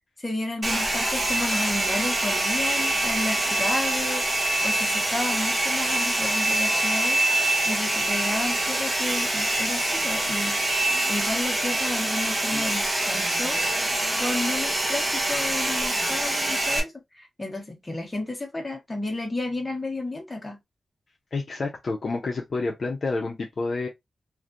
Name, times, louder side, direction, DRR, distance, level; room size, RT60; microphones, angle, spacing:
voice 1, 0.2-4.3 4.6-10.6 11.1-13.6 14.2-20.6, left 2 dB, 20° left, 1.1 m, -32 dB
Domestic sounds home sounds, 0.6-16.8, right 1 dB, 30° right, 0.9 m, -25 dB
voice 2, 21.3-23.9, left 3 dB, 50° left, 0.6 m, -29 dB
3.2 x 2.5 x 2.4 m
wide cardioid pair, 140°, 0 cm